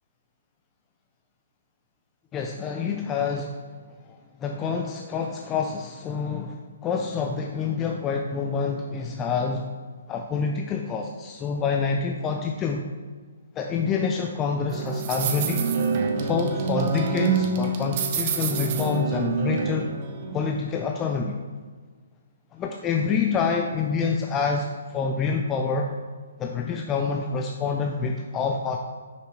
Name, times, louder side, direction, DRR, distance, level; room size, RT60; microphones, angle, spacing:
voice 1, 2.3-3.7 4.4-9.7 10.1-12.8 13.5-15.7 16.2-19.9 20.3-21.4 22.5-25.9 26.4-28.8, left 5 dB, 20° left, 2 dB, 0.5 m, -27 dB
sound 1, 14.7-20.5, right 5 dB, 40° right, 0.9 m, -27 dB
10.5 x 5.8 x 3.3 m, 1.5 s
hypercardioid pair, 145°, 0 cm